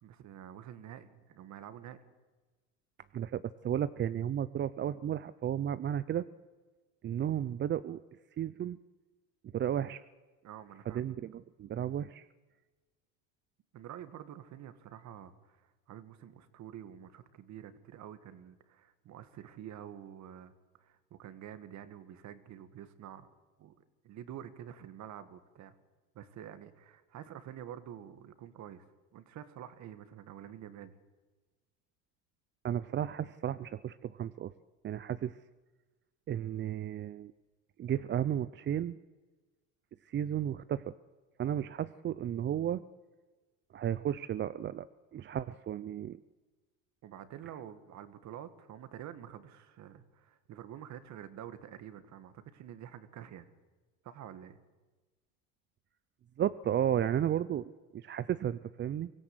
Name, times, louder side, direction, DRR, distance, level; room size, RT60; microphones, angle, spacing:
voice 1, 0.0-2.1 10.4-11.1 13.7-20.5 20.8-23.3 23.6-23.7 24.0-25.7 26.1-28.9 29.1-30.9 47.0-53.5 54.0-54.6, right 10 dB, 50° right, 11 dB, 2.1 m, -48 dB
voice 2, 3.1-6.2 7.0-8.0 8.4-8.8 9.5-10.0 10.9-12.3 32.6-34.5 34.8-35.4 36.3-37.3 37.8-39.0 40.0-40.9 41.4-42.8 43.7-44.9 45.1-46.2 56.4-59.1, right 10 dB, 30° right, 15 dB, 0.6 m, -33 dB
24.0 x 16.0 x 8.0 m, 1.2 s
supercardioid pair, 100°, 35 cm